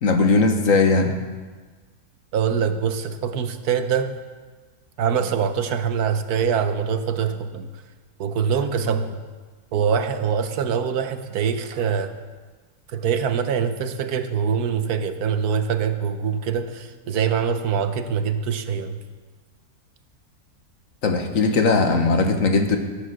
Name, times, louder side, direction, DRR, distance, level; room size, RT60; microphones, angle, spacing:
voice 1, 0.0-1.1 21.0-22.8, left 3 dB, 60° left, 5 dB, 1.6 m, -19 dB
voice 2, 2.3-4.1 5.0-7.7 8.2-9.2 9.7-12.1 12.9-19.0, right 7 dB, 85° right, 9 dB, 1.4 m, -24 dB
13.5 x 10.0 x 6.4 m, 1.4 s
omnidirectional pair, 1.6 m